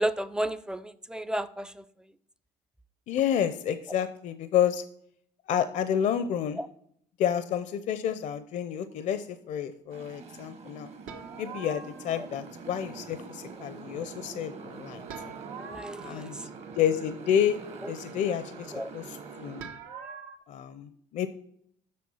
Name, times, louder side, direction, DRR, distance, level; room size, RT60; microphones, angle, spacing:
voice 1, 0.0-1.9 6.6-6.7 12.2-12.3 15.6-16.5 17.8-17.9 18.7-18.9, right 1 dB, 5° right, 15 dB, 0.4 m, -33 dB
voice 2, 3.1-4.8 5.5-6.6 7.2-10.9 11.4-15.1 16.0-16.4 16.8-17.6 17.9-19.7 20.5-21.3, left 9 dB, 60° left, 12 dB, 0.6 m, -29 dB
Motorcycle, 9.9-19.6, right 5 dB, 50° right, 1.1 m, -44 dB
sound 1, 11.1-12.4 15.1-17.0 19.6-20.4, right 6 dB, 85° right, 1.1 m, -44 dB
7.6 x 5.8 x 5.5 m, 0.69 s
supercardioid pair, 90°, 14 cm